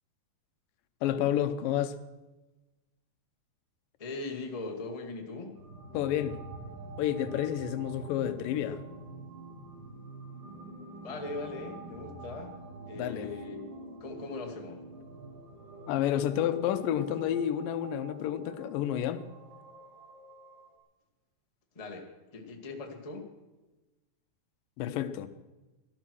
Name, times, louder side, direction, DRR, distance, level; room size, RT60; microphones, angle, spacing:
voice 1, 1.0-2.0 5.9-6.4 7.0-8.8 13.0-13.3 15.9-19.2 24.8-25.3, left 10 dB, 80° left, 2.4 m, -30 dB
voice 2, 4.0-5.6 11.0-12.6 12.9-13.7 14.0-14.8 21.7-23.3, left 3 dB, 20° left, 1.0 m, -40 dB
sound 1, 5.6-20.8, right 2 dB, 70° right, 4.1 m, -46 dB
18.0 x 11.5 x 6.3 m
omnidirectional pair, 4.0 m